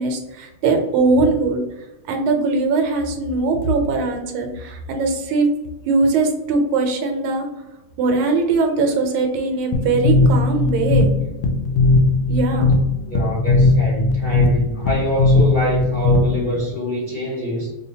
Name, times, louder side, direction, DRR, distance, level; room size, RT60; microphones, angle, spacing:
voice 1, 0.0-1.6 2.1-5.5 5.9-7.5 8.0-11.1 12.3-12.7, right 3 dB, 90° right, 4 dB, 1.6 m, -20 dB
sound 1, 9.7-16.6, left 3 dB, 80° left, 1.4 m, -18 dB
voice 2, 13.1-17.7, equal, 60° left, -6 dB, 0.5 m, -24 dB
5.5 x 2.1 x 2.7 m, 0.99 s
omnidirectional pair, 2.3 m